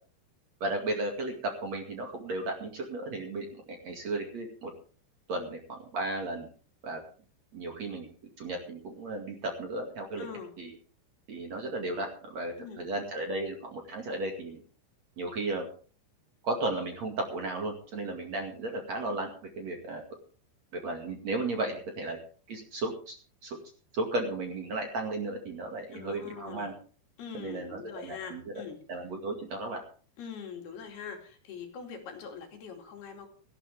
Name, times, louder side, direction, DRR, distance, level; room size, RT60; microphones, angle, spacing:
voice 1, 0.6-4.7 5.3-6.5 6.8-7.0 7.5-10.3 10.6-10.7 11.3-14.6 15.2-15.7 16.4-19.3 19.6-20.0 20.7-22.2 22.5-23.2 23.4-23.6 23.9-26.7 27.3-28.6 28.9-29.8, right 2 dB, 45° right, 2 dB, 2.9 m, -34 dB
voice 2, 10.2-10.5 12.6-12.8 25.9-26.7 27.2-28.8 30.2-33.3, left 6 dB, 65° left, 2 dB, 4.3 m, -43 dB
18.0 x 14.0 x 3.6 m, 0.40 s
omnidirectional pair, 5.1 m